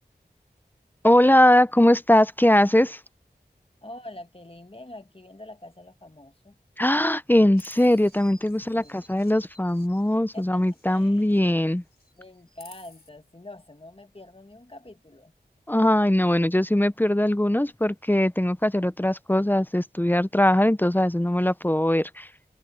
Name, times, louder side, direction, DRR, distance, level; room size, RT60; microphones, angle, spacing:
voice 1, 1.0-3.0 6.8-11.8 15.7-22.3, left 1 dB, 10° left, 0.6 m, -21 dB
voice 2, 3.8-6.6 8.7-9.1 10.3-10.6 10.8-11.3 12.2-15.3, left 1 dB, 30° left, 1.7 m, -45 dB
Chirp tweet, 7.5-11.6 11.9-13.1, left 2 dB, 65° left, 4.9 m, -53 dB
wide cardioid pair, 55°, 17 cm